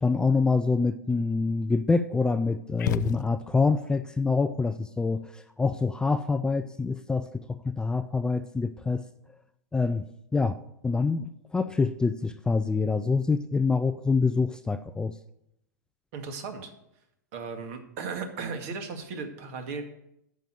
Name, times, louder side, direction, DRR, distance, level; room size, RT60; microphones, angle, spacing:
voice 1, 0.0-9.0 9.7-10.0 10.3-10.6 10.8-15.1, left 4 dB, 10° left, 10 dB, 0.4 m, -26 dB
sound 1, 2.8-3.8, left 9 dB, 75° left, 0.5 m, -32 dB
voice 2, 16.1-16.7 17.3-19.8, right 4 dB, 55° right, 6 dB, 2.1 m, -36 dB
10.5 x 6.5 x 7.7 m, 0.80 s
hypercardioid pair, 115°, 10 cm